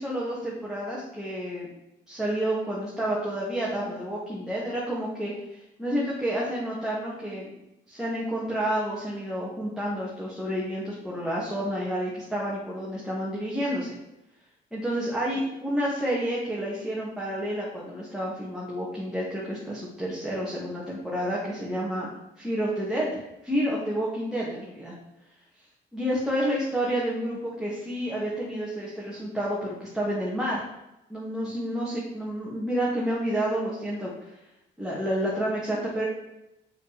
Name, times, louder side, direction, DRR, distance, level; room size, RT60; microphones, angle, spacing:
voice 1, 0.0-1.7 2.1-7.6 7.9-14.0 14.7-22.1 22.4-23.1 23.4-24.9 25.9-30.7 31.1-34.1 34.8-36.0, equal, ahead, -6 dB, 2.6 m, -29 dB
6.5 x 5.6 x 6.9 m, 0.89 s
cardioid pair, 90°, 20 cm